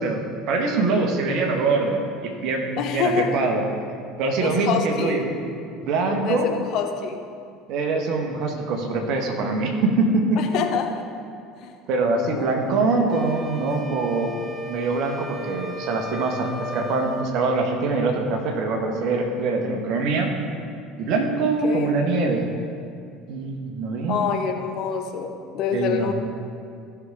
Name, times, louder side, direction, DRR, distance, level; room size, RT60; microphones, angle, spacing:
voice 1, 0.0-3.6 4.2-5.2 5.8-6.5 7.7-10.4 11.9-14.3 14.7-20.3 21.0-22.4 23.3-24.2 25.7-26.1, right 3 dB, 50° right, 3 dB, 1.4 m, -23 dB
voice 2, 2.8-3.4 4.4-5.2 6.3-7.2 10.4-11.0 11.6-11.7 12.4-12.8 21.6-21.9 24.1-26.1, left 7 dB, 50° left, 4 dB, 0.9 m, -26 dB
sound 1, 13.1-17.3, left 2 dB, 20° right, 1.1 m, -36 dB
15.0 x 6.1 x 3.7 m, 2.3 s
figure-of-eight pair, 65°, 0 cm